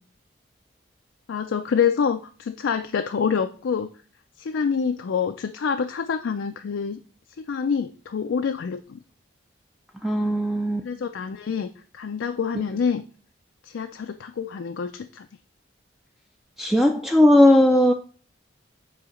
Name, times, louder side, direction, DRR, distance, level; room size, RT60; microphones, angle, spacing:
voice 1, 1.3-3.9 4.4-7.0 7.4-9.0 10.8-13.0 13.6-15.3, left 6 dB, 80° left, 7 dB, 0.4 m, -26 dB
voice 2, 10.0-10.9 16.6-17.9, left 1 dB, ahead, 3 dB, 0.3 m, -17 dB
7.8 x 2.8 x 5.1 m, 0.42 s
head